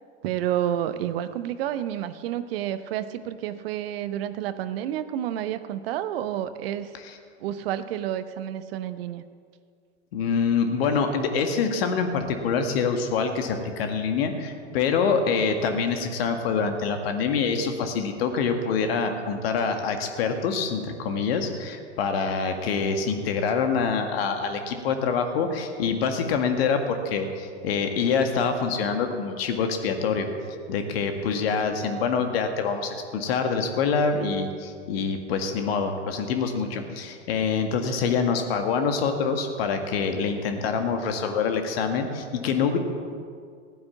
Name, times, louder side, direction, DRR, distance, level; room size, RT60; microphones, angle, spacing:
voice 1, 0.2-6.9 7.4-9.2, right 11 dB, 55° right, 12 dB, 0.9 m, -30 dB
voice 2, 10.1-30.3 30.7-42.8, left 5 dB, 55° left, 6 dB, 1.9 m, -25 dB
16.0 x 9.7 x 7.2 m, 2.2 s
figure-of-eight pair, 85°, 35 cm